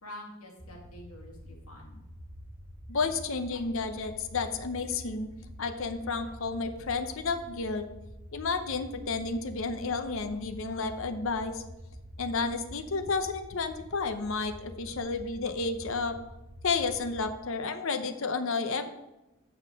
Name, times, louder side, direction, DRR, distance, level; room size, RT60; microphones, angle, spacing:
voice 1, 0.0-2.0, left 1 dB, 90° left, 0 dB, 2.1 m, -47 dB
sound 1, 0.6-17.4, equal, 20° right, 0.9 m, -47 dB
voice 2, 2.9-5.3 5.6-7.8 8.3-11.6 12.2-16.2 16.6-18.9, left 4 dB, 65° left, 8 dB, 0.8 m, -31 dB
7.5 x 6.0 x 5.2 m, 0.98 s
head